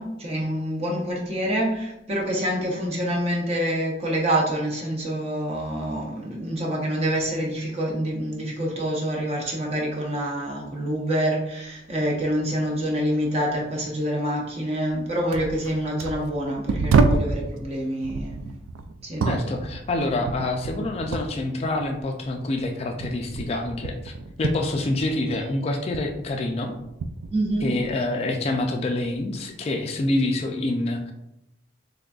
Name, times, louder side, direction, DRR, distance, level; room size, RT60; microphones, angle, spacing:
voice 1, 0.0-18.4 19.0-19.3 27.3-27.8, right 1 dB, 35° right, -2 dB, 0.6 m, -26 dB
sound 1, 14.9-15.0 15.3-17.4 18.0-21.4 21.6-25.5 25.7-28.1 28.5-29.2 30.0-30.2, right 4 dB, 90° right, 0.3 m, -28 dB
voice 2, 19.2-24.1 24.4-26.7 27.6-31.1, left 2 dB, 30° left, 3 dB, 0.3 m, -27 dB
3.8 x 3.4 x 2.3 m, 0.85 s
head